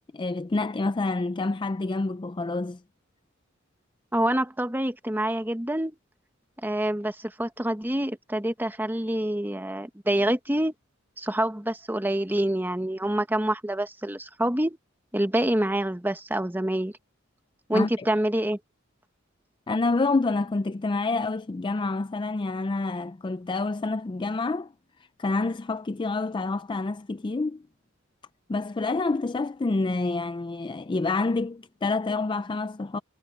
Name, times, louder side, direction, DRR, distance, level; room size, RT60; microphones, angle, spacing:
voice 1, 0.1-2.8 17.7-18.1 19.7-24.7 25.2-27.6 28.5-33.0, left 3 dB, 25° left, 0.4 m, -28 dB
voice 2, 4.1-6.0 6.6-10.7 11.2-14.8 15.1-16.9 17.7-18.6, right 1 dB, 10° right, 1.2 m, -26 dB
head